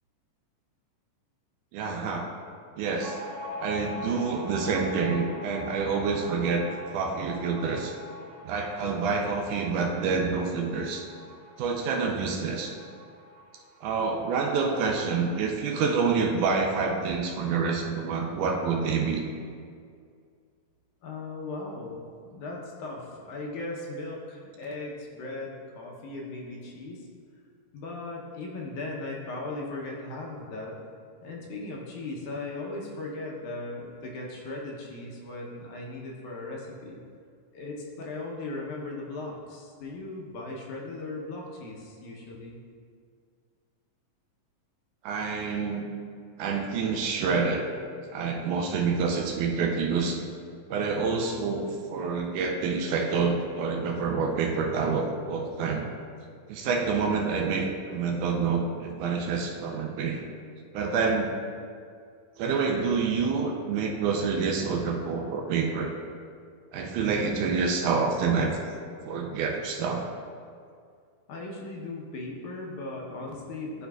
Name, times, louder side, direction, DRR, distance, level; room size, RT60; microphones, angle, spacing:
voice 1, 1.7-2.3 2.8-3.2 3.6-6.7 6.9-7.9 8.4-11.0 11.6-12.7 13.8-19.3 45.0-45.9 46.4-47.7 48.1-50.2 50.7-55.9 56.5-60.3 60.7-61.3 62.4-65.9 66.7-68.6 69.0-70.0, right 5 dB, 80° right, 2 dB, 1.9 m, -27 dB
sound 1, 3.0-16.1 16.4-16.5 16.8-17.5, left 1 dB, 60° right, 2.2 m, -43 dB
voice 2, 21.0-27.1 27.7-30.8 31.2-37.0 37.5-42.6 71.3-73.9, left 2 dB, 75° left, -2 dB, 2.1 m, -38 dB
12.0 x 4.4 x 2.3 m, 2.2 s
omnidirectional pair, 3.8 m